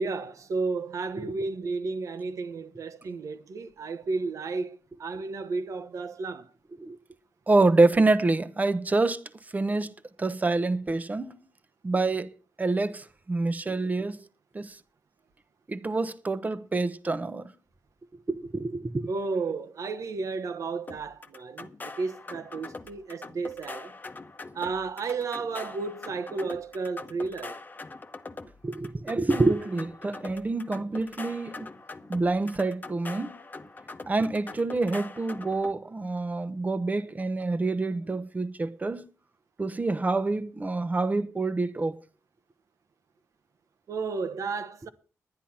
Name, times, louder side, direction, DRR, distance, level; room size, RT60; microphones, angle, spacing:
voice 1, 0.0-6.5 19.1-23.9 24.5-27.6 43.9-44.9, right 4 dB, 70° right, 1.2 m, -33 dB
voice 2, 7.5-9.2 9.5-9.9 10.2-11.3 11.8-12.3 12.6-14.2 14.5-14.8 15.7-17.5 18.3-19.1 28.6-31.7 32.1-33.4 34.1-39.1 39.6-42.0, right 3 dB, 30° right, 1.0 m, -27 dB
sound 1, 20.9-35.7, left 3 dB, 35° left, 1.0 m, -43 dB
10.5 x 10.0 x 5.8 m
cardioid pair, 85°, 6 cm